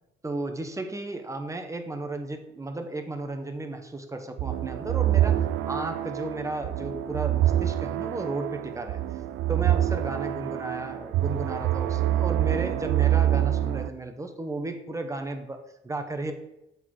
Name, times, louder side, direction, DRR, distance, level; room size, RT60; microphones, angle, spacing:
voice 1, 0.2-9.0 9.5-16.3, right 2 dB, 15° right, 6 dB, 0.9 m, -34 dB
sound 1, 4.4-13.9, right 12 dB, 85° right, 0.4 m, -26 dB
8.2 x 3.9 x 4.7 m, 0.90 s
cardioid pair, 90°, 20 cm